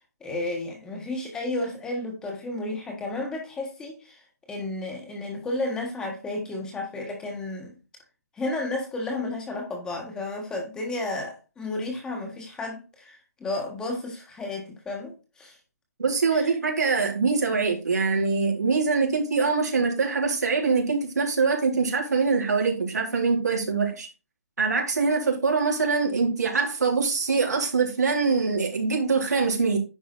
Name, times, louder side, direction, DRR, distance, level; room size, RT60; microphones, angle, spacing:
voice 1, 0.2-4.2 4.5-7.7 8.4-15.6 16.3-16.5, left 2 dB, 10° left, 1.5 m, -32 dB
voice 2, 16.0-24.1 24.6-29.8, right 4 dB, 90° right, 3.5 m, -24 dB
9.9 x 4.8 x 4.1 m
hypercardioid pair, 160°, 9 cm